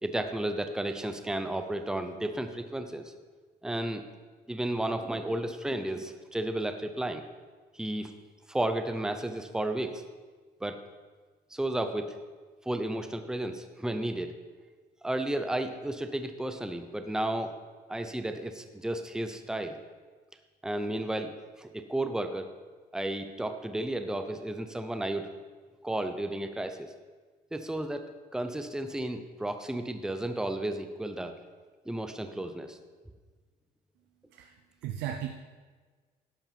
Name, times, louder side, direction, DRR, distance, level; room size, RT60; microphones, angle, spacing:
voice 1, 0.0-3.1 3.6-4.0 4.5-7.2 7.7-8.1 8.5-10.0 10.6-10.8 11.5-12.2 12.7-14.4 15.0-17.5 17.9-19.8 20.6-22.5 22.9-25.3 25.8-26.9 27.5-31.3 31.9-32.8, right 1 dB, 5° right, 7 dB, 0.8 m, -33 dB
voice 2, 34.3-35.3, right 10 dB, 90° right, 3 dB, 0.8 m, -36 dB
11.5 x 5.6 x 7.0 m, 1.4 s
cardioid pair, 110°, 17 cm